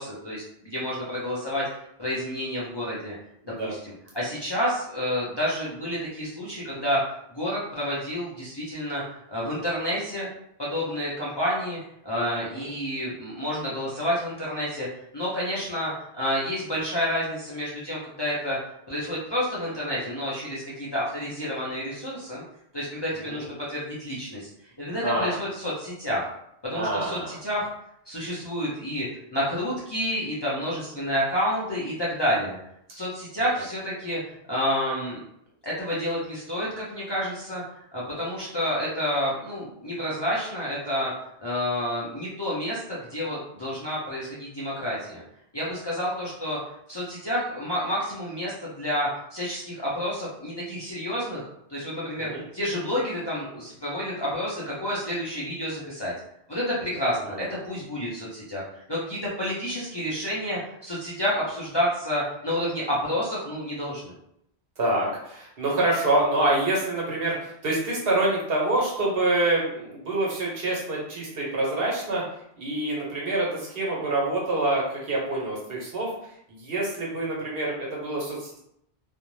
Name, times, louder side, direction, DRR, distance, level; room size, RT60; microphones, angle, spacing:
voice 1, 0.0-1.6 2.0-3.1 3.6-7.0 7.3-10.3 10.6-11.8 12.0-14.9 15.1-18.6 18.9-22.4 22.7-24.5 24.8-26.3 26.6-27.7 28.1-32.6 32.9-35.2 35.6-37.6 37.9-41.1 41.4-45.2 45.5-46.6 46.9-56.1 56.5-64.1, equal, 30° left, -8 dB, 0.5 m, -29 dB
voice 2, 25.0-25.4 26.7-27.3 52.2-52.4 57.3-57.4 64.8-72.2 72.6-78.6, right 2 dB, 65° right, -4 dB, 1.1 m, -26 dB
2.5 x 2.1 x 3.0 m, 0.75 s
omnidirectional pair, 1.1 m